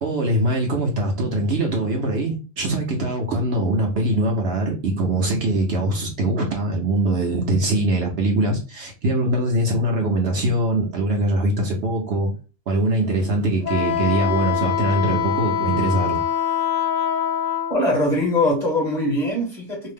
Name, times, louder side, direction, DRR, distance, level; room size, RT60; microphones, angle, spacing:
voice 1, 0.0-12.3 12.7-16.2, right 1 dB, 60° right, 0.8 m, -22 dB
Wind instrument woodwind instrument, 13.6-17.8, left 9 dB, 75° left, 0.9 m, -23 dB
voice 2, 17.7-19.9, left 1 dB, 40° left, 0.9 m, -22 dB
2.6 x 2.0 x 3.3 m
omnidirectional pair, 1.3 m